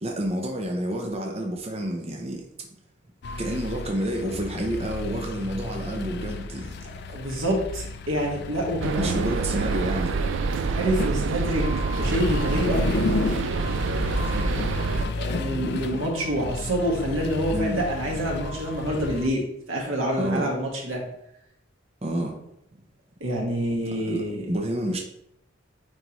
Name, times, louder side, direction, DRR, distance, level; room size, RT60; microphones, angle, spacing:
voice 1, 0.0-2.7 3.4-7.0 9.0-10.2 12.2-12.3 14.2-14.6 17.5-17.8 20.2-20.5 22.0-22.4 24.0-24.2 24.5-25.0, right 1 dB, 30° right, 1 dB, 0.7 m, -29 dB
sound 1, 3.2-19.3, left 3 dB, 55° left, 0.4 m, -32 dB
voice 2, 7.1-9.2 10.7-11.7 12.0-12.8 15.1-21.1 23.2-24.5, equal, 90° right, -1 dB, 1.6 m, -27 dB
sound 2, 8.8-15.0, right 4 dB, 65° right, 0.3 m, -27 dB
9.1 x 3.5 x 3.0 m, 0.75 s
head